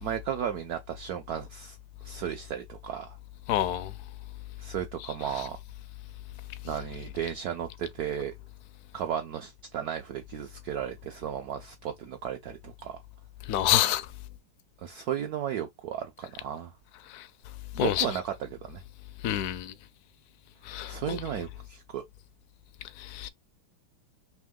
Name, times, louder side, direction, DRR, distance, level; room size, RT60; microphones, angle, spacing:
voice 1, 0.0-1.8 2.0-3.2 4.6-5.6 6.6-8.3 8.9-13.0 14.8-16.7 17.7-18.8 20.9-22.0, right 9 dB, 70° right, 0.9 m, -34 dB
voice 2, 3.5-3.9 13.5-14.1 17.1-17.2 17.8-18.1 19.2-19.7 20.7-21.2 23.0-23.3, left 12 dB, 75° left, 0.9 m, -27 dB
3.6 x 2.9 x 3.6 m
omnidirectional pair, 2.1 m